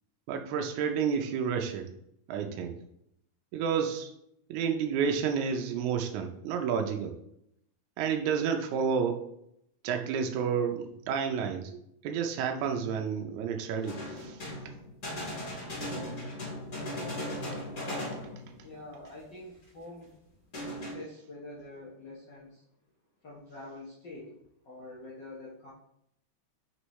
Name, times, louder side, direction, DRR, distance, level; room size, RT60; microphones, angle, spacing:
voice 1, 0.3-1.9 2.3-2.8 3.5-4.1 4.5-7.2 8.0-9.2 9.8-11.7 12.0-14.8, right 6 dB, 80° right, 3 dB, 2.0 m, -30 dB
sound 1, 13.8-18.7 19.1-19.2 19.7-19.8 20.5-20.9, left 1 dB, 30° left, 2.2 m, -37 dB
voice 2, 18.6-20.2 20.9-22.6 23.2-24.3 24.6-25.7, left 2 dB, 60° left, -4 dB, 1.2 m, -46 dB
6.4 x 5.3 x 3.1 m, 0.74 s
omnidirectional pair, 3.4 m